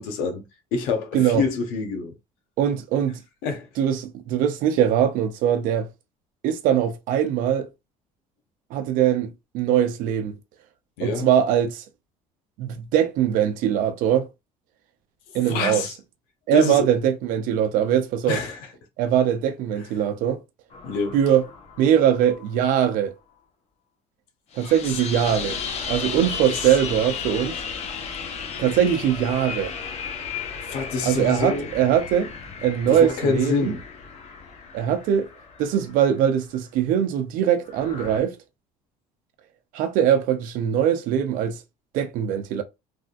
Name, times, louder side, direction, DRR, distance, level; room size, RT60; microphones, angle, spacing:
voice 1, 0.0-2.1 3.4-3.7 11.0-11.3 15.5-15.9 16.5-16.9 18.3-18.6 20.8-21.2 24.6-24.7 26.5-26.7 30.7-31.7 32.9-33.8, left 4 dB, 90° left, 1.0 m, -26 dB
voice 2, 2.6-3.2 3.8-5.9 6.4-7.7 8.7-10.4 11.0-11.8 12.6-14.3 15.3-15.9 16.5-18.4 19.0-20.4 21.1-21.4 21.8-23.1 24.5-25.6 25.9-27.6 28.6-29.7 31.0-32.3 32.6-33.7 34.7-35.3 35.6-38.4 39.7-41.6 41.9-42.6, right 9 dB, 75° right, 0.7 m, -21 dB
sound 1, 20.7-22.9 24.5-36.1 37.7-38.2, left 6 dB, 50° left, 0.7 m, -35 dB
3.4 x 2.5 x 2.4 m
cardioid pair, 125°, 14 cm